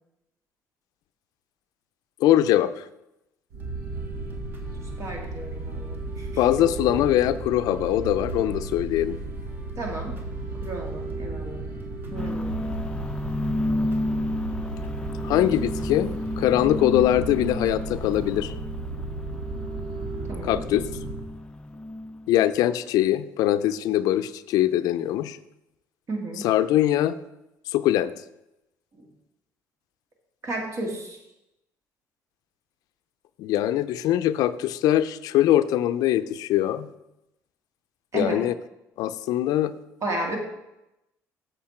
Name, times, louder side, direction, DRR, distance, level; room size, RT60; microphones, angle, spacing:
voice 1, 2.2-2.9 6.4-9.2 15.2-16.1 16.4-18.5 20.4-20.9 22.3-25.4 26.4-27.1 27.7-28.1 33.4-36.9 38.1-38.5 39.0-39.7, left 13 dB, 75° left, 13 dB, 0.4 m, -22 dB
sound 1, 3.5-21.3, right 3 dB, 75° right, 1.5 m, -34 dB
sound 2, 3.6-18.5, right 1 dB, 30° right, 1.6 m, -50 dB
voice 2, 5.0-6.4 9.8-10.2 10.6-11.7 12.1-12.6 20.3-20.6 26.1-26.4 28.9-29.1 30.4-31.2 38.1-38.4 40.0-40.4, right 2 dB, 50° right, 1 dB, 2.3 m, -33 dB
sound 3, 12.2-22.4, left 1 dB, 15° left, 0.5 m, -32 dB
7.7 x 6.7 x 4.3 m, 0.90 s
cardioid pair, 90°, 6 cm